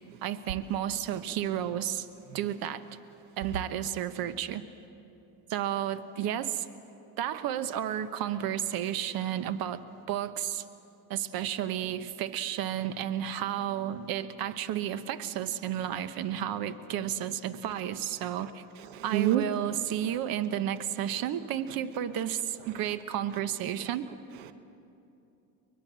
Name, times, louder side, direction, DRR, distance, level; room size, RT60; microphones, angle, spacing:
voice 1, 0.2-2.1 2.3-2.9 3.4-4.6 5.5-6.7 7.2-10.6 11.1-18.6 19.0-24.1, right 10 dB, 60° right, 12 dB, 1.1 m, -32 dB
voice 2, 18.8-19.4 20.1-20.2 21.1-21.3 21.7-21.8 22.6-22.9 23.3-23.4 23.8-23.9 24.3-24.5, right 12 dB, 85° right, 11 dB, 1.0 m, -32 dB
23.5 x 21.0 x 7.7 m, 2.8 s
supercardioid pair, 100°, 41 cm